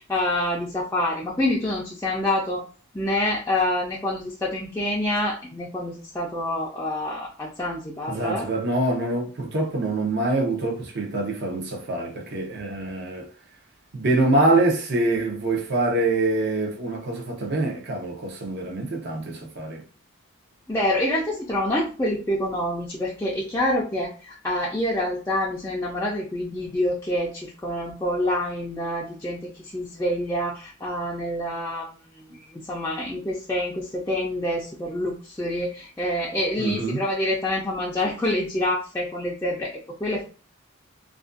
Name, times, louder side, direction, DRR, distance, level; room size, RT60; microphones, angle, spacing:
voice 1, 0.0-2.6 2.9-8.5 20.7-31.9 32.5-39.7 40.0-40.2, left 1 dB, 10° left, 0.3 m, -27 dB
voice 2, 8.1-13.3 13.9-19.8 36.6-37.0, right 2 dB, 50° right, 0.6 m, -25 dB
2.5 x 2.2 x 2.4 m
head